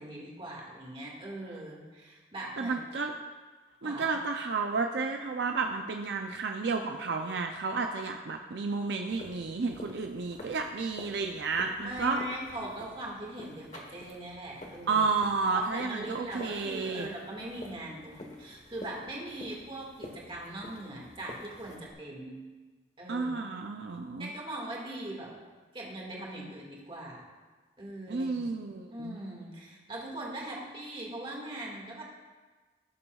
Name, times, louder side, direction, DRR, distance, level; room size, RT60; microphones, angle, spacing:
voice 1, 0.0-2.8 3.8-4.2 11.8-15.1 15.5-22.4 23.0-23.3 24.2-25.3 25.7-27.2 27.8-28.5 28.9-32.0, right 1 dB, 30° right, -3 dB, 1.9 m, -41 dB
voice 2, 2.6-3.1 3.8-12.2 14.9-17.1 23.1-24.3 28.1-29.2, right 4 dB, 70° right, 4 dB, 0.5 m, -31 dB
sound 1, 9.1-21.9, left 1 dB, 40° left, 1.2 m, -49 dB
17.0 x 6.9 x 2.4 m, 1.3 s
head